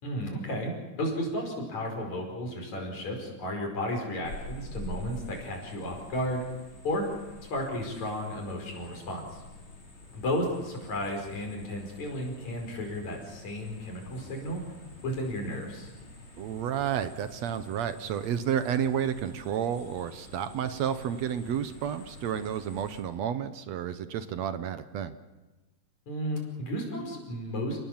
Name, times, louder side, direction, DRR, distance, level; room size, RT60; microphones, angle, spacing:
voice 1, 0.0-6.4 6.8-7.1 7.5-9.4 10.1-14.6 15.0-15.9 26.1-27.8, equal, 65° left, 2 dB, 6.5 m, -33 dB
sound 1, 4.2-23.0, left 1 dB, 40° left, 5.2 m, -47 dB
voice 2, 16.4-25.1, right 9 dB, 70° right, 11 dB, 2.0 m, -31 dB
29.5 x 19.0 x 7.3 m, 1.1 s
omnidirectional pair, 3.4 m